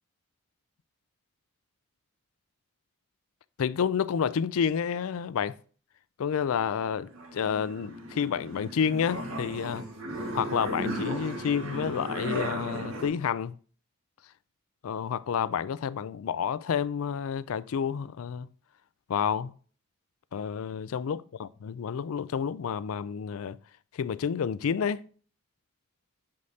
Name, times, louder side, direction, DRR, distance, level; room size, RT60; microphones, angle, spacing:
voice 1, 3.6-5.6 6.2-9.8 10.3-13.6 14.8-18.5 19.1-19.5 20.3-23.6 23.9-25.0, left 7 dB, 75° left, 0.4 m, -29 dB
sound 1, 6.6-13.1, equal, 65° right, 1.6 m, -35 dB
7.8 x 5.3 x 2.8 m
head